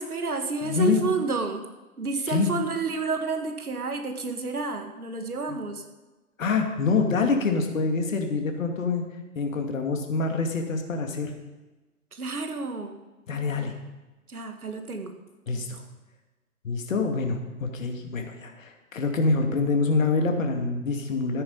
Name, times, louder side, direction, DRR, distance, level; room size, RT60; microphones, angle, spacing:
voice 1, 0.0-1.7 2.0-5.8 12.1-13.0 14.3-15.2, right 4 dB, 75° right, 6 dB, 2.0 m, -30 dB
voice 2, 0.6-1.0 2.3-2.5 5.5-5.6 6.4-9.0 9.4-11.3 13.3-13.7 15.5-15.8 16.6-21.4, left 4 dB, 60° left, 3 dB, 2.5 m, -26 dB
14.0 x 9.6 x 5.5 m, 1.1 s
figure-of-eight pair, 125°, 44 cm